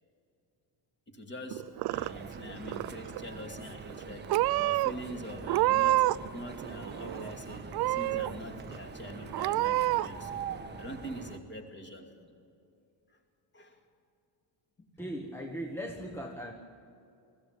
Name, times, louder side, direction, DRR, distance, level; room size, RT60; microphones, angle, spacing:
voice 1, 1.1-10.4 10.8-12.3 13.1-13.2 13.5-13.8 14.8-14.9, equal, 20° left, 3 dB, 2.4 m, -44 dB
Purr / Meow, 1.5-2.4 2.6-3.2 3.9-4.0 4.3-4.9 5.4-6.3 6.6-7.3 7.7-8.3 8.7-8.8 9.3-10.1, right 16 dB, 50° right, 0.5 m, -28 dB
sound 1, 1.9-11.4, right 5 dB, 20° right, 1.2 m, -44 dB
voice 2, 15.0-16.5, equal, 5° left, 0 dB, 1.3 m, -38 dB
21.0 x 15.0 x 9.1 m, 2.6 s
cardioid pair, 130°, 49 cm